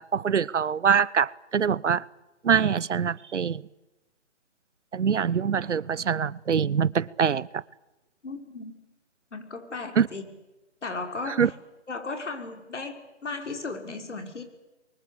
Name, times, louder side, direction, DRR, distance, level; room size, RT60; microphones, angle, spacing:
voice 1, 0.0-2.0 2.4-3.6 4.9-7.6 10.0-10.1 11.4-11.5, right 7 dB, 85° right, 0.9 m, -24 dB
voice 2, 8.2-8.7 9.3-10.2 10.8-11.5 11.9-13.0 13.2-14.4, left 3 dB, 85° left, 5.8 m, -35 dB
29.5 x 23.5 x 8.1 m
hypercardioid pair, 165°, 35 cm